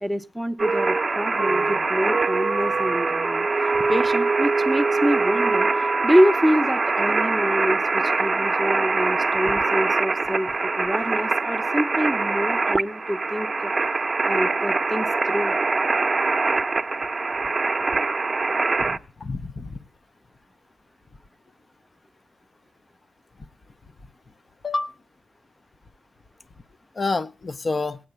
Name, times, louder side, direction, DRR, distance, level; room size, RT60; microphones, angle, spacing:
voice 1, 0.0-3.5 3.9-5.7 6.0-13.7 14.3-15.6, equal, ahead, 0.7 m, -26 dB
sound 1, 0.6-19.0, right 3 dB, 35° right, 0.7 m, -23 dB
voice 2, 8.7-9.2 18.8-19.8 24.6-24.9 27.0-28.0, left 3 dB, 40° left, 0.7 m, -29 dB
16.5 x 8.9 x 6.7 m
cardioid pair, 80°, 0 cm